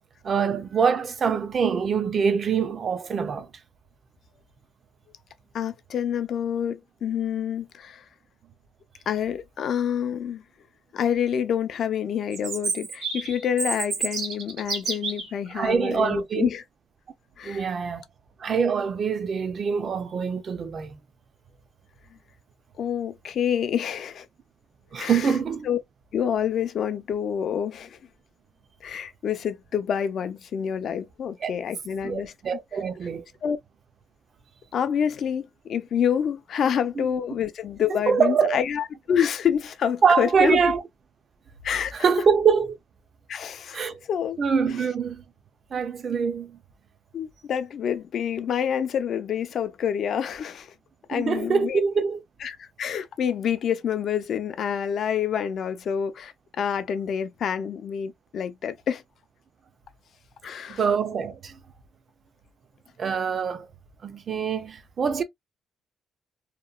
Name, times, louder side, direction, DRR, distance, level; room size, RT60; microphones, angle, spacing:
voice 1, 0.2-3.5 15.5-16.5 17.4-18.0 18.4-21.0 24.9-25.7 31.4-31.5 32.0-33.2 37.0-37.1 38.1-38.6 40.0-40.8 41.9-42.8 43.7-44.0 44.4-45.2 45.7-46.5 51.1-52.2 60.7-61.5 63.0-63.7 64.0-65.2, right 6 dB, 40° right, 0.4 m, -24 dB
voice 2, 5.5-8.0 9.1-10.4 10.9-16.6 17.4-17.7 22.8-24.3 25.0-25.3 25.6-25.8 26.1-28.0 28.8-32.3 33.4-33.6 34.7-40.6 41.6-42.1 43.3-44.4 47.1-50.7 51.1-51.8 52.4-59.0 60.4-60.8, left 8 dB, 50° left, 0.4 m, -27 dB
Chirp tweet, 12.3-15.3, right 4 dB, 75° right, 1.3 m, -30 dB
2.8 x 2.1 x 2.2 m
cardioid pair, 150°, 0 cm